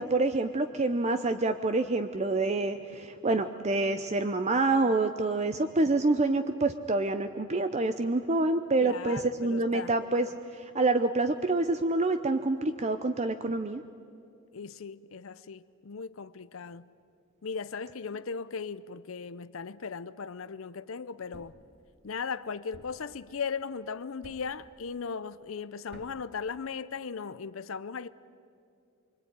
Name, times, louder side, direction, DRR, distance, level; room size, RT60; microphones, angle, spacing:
voice 1, 0.0-10.3 10.5-13.8, right 2 dB, 30° right, 0.7 m, -27 dB
voice 2, 8.8-9.9 14.5-16.9 17.4-21.5 22.0-28.1, left 5 dB, 70° left, 0.6 m, -37 dB
Thump thud, 21.3-21.7 22.7-23.1 24.2-24.6 25.9-26.3, right 1 dB, 50° right, 2.3 m, -51 dB
24.5 x 24.5 x 9.4 m
head